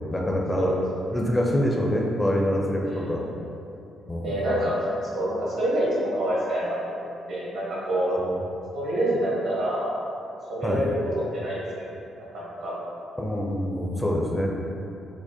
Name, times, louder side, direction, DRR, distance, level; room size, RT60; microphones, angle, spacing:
voice 1, 0.1-0.7 1.1-3.3 4.1-4.3 8.1-8.3 10.6-10.8 13.2-14.5, equal, 10° left, -2 dB, 0.4 m, -25 dB
voice 2, 2.8-3.1 4.2-8.2 8.7-9.9 10.5-11.0 11.3-11.8 12.3-12.8, right 1 dB, 75° right, -7 dB, 1.3 m, -27 dB
4.8 x 2.1 x 2.7 m, 2.7 s
cardioid pair, 90°, 0 cm